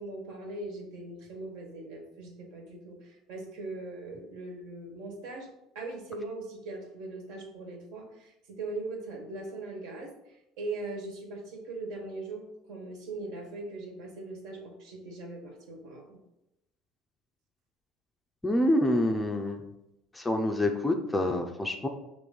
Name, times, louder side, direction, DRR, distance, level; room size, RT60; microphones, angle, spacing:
voice 1, 0.0-5.5 5.7-10.1 10.6-16.2, right 2 dB, 70° right, 1 dB, 1.7 m, -40 dB
voice 2, 18.4-19.6 20.1-21.9, left 1 dB, 10° left, 4 dB, 0.5 m, -27 dB
6.1 x 3.1 x 5.1 m, 0.89 s
cardioid pair, 155°, 0 cm